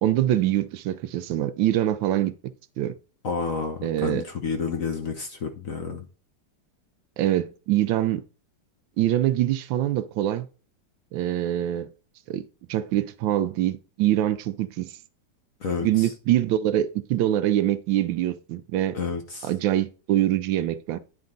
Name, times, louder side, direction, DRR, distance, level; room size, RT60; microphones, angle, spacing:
voice 1, 0.0-2.3 2.8-2.9 3.8-4.2 7.2-8.2 9.0-10.5 11.1-11.9 12.3-15.0 15.8-19.0 19.4-21.0, right 13 dB, 75° right, 1.3 m, -24 dB
voice 2, 3.2-6.1 15.6-16.1 18.9-19.5, left 5 dB, 55° left, 1.0 m, -30 dB
9.6 x 4.5 x 3.9 m
omnidirectional pair, 2.2 m